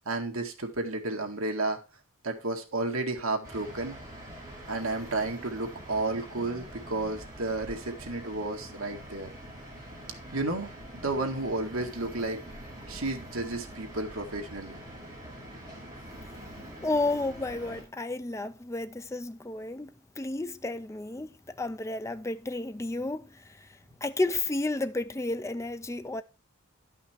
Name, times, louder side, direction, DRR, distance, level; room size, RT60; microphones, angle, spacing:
voice 1, 0.1-1.8 2.2-4.0 4.7-9.3 10.3-12.4 12.9-14.8, right 2 dB, 65° right, 1.9 m, -32 dB
sound 1, 3.4-17.8, right 1 dB, 15° right, 4.6 m, -45 dB
voice 2, 16.8-19.9 20.2-23.7 24.0-26.2, left 2 dB, 15° left, 0.4 m, -32 dB
11.5 x 5.8 x 4.4 m
head